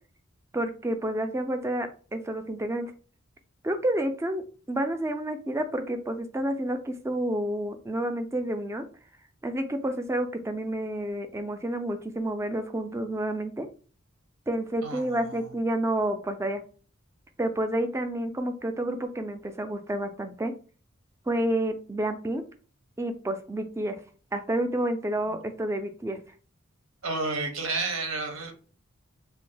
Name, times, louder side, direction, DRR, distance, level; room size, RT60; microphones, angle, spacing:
voice 1, 0.5-2.9 3.6-4.4 4.7-8.8 9.4-13.7 14.5-16.6 17.4-20.5 21.3-22.4 23.0-24.0 24.3-26.2, right 1 dB, 15° right, 7 dB, 0.4 m, -29 dB
voice 2, 14.8-15.5 25.3-25.4 27.0-28.5, right 3 dB, 85° right, 4 dB, 0.8 m, -31 dB
2.7 x 2.1 x 3.8 m, 0.39 s
head